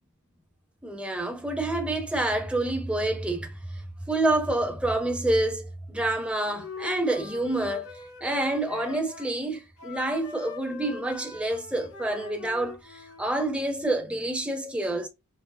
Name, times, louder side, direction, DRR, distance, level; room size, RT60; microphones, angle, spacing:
voice 1, 0.8-3.8 4.1-15.1, right 1 dB, 5° right, 0.8 m, -28 dB
Wind instrument woodwind instrument, 6.3-9.3 9.8-13.3, left 3 dB, 80° left, 1.8 m, -41 dB
6.0 x 2.2 x 2.7 m
head